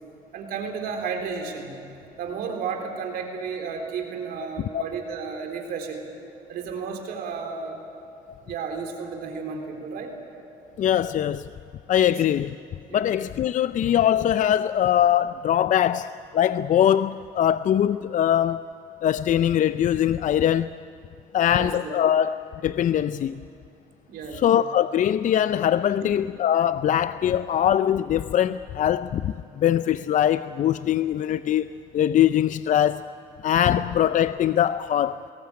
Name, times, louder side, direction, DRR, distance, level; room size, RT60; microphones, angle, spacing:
voice 1, 0.3-1.8 2.2-6.1 6.5-7.8 8.4-10.1 12.0-12.2 12.9-13.1 21.5-21.9 24.1-24.5 26.0-26.1, right 5 dB, 70° right, 3.7 m, -33 dB
voice 2, 10.8-11.5 11.9-12.5 12.9-18.6 19.0-20.8 21.3-23.4 24.3-31.7 31.9-33.1 33.4-35.2, left 10 dB, 55° left, 0.5 m, -22 dB
22.5 x 18.0 x 8.6 m
supercardioid pair, 70°, 16 cm